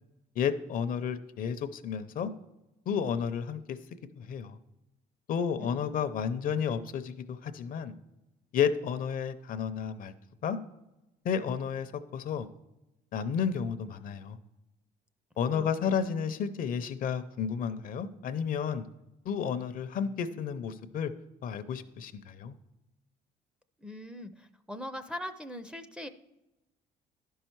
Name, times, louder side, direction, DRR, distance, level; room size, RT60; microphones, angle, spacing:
voice 1, 0.4-2.3 2.9-3.8 4.2-4.6 5.3-7.9 8.5-10.1 10.4-10.6 11.2-12.5 13.1-14.4 15.4-18.9 19.2-21.1 21.4-22.6, left 7 dB, 55° left, 12 dB, 0.6 m, -32 dB
voice 2, 5.6-6.0 15.5-16.3 23.8-26.1, left 1 dB, 5° right, 7 dB, 0.5 m, -42 dB
11.5 x 5.6 x 4.5 m, 0.97 s
cardioid pair, 110°, 17 cm